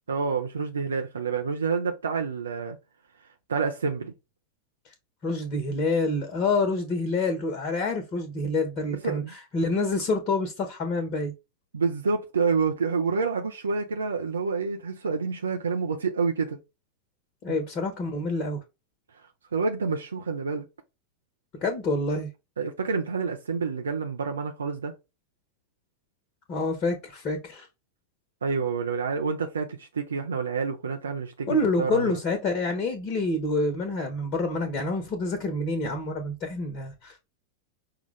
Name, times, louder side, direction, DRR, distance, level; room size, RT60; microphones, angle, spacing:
voice 1, 0.1-2.8 3.2-4.1 9.0-9.3 11.7-16.6 17.5-17.6 19.1-20.7 22.6-24.9 28.4-32.2, right 5 dB, 70° right, 0.6 m, -28 dB
voice 2, 5.2-11.3 17.4-18.6 21.6-22.3 26.5-27.7 31.5-37.2, left 2 dB, 35° left, 1.2 m, -27 dB
5.7 x 2.4 x 3.3 m
figure-of-eight pair, 90°, 0 cm